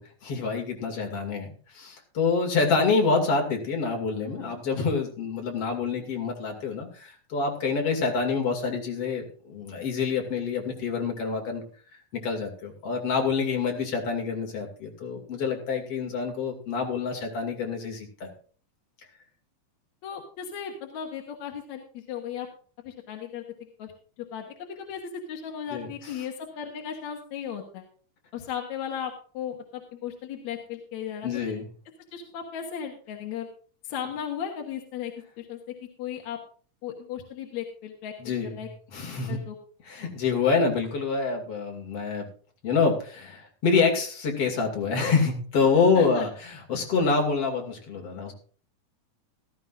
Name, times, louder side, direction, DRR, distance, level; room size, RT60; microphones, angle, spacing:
voice 1, 0.0-1.5 1.7-11.6 12.1-18.3 25.7-26.1 31.2-31.6 38.2-39.4 39.9-42.3 42.6-48.3, left 4 dB, 50° left, 3 dB, 3.2 m, -27 dB
voice 2, 20.0-22.5 22.8-23.9 24.3-27.9 28.3-31.6 32.1-33.5 33.8-35.6 36.0-36.4 36.8-38.7 39.3-39.6 46.0-46.2, left 8 dB, 65° left, 2 dB, 2.6 m, -36 dB
16.0 x 13.0 x 2.5 m, 0.43 s
omnidirectional pair, 3.6 m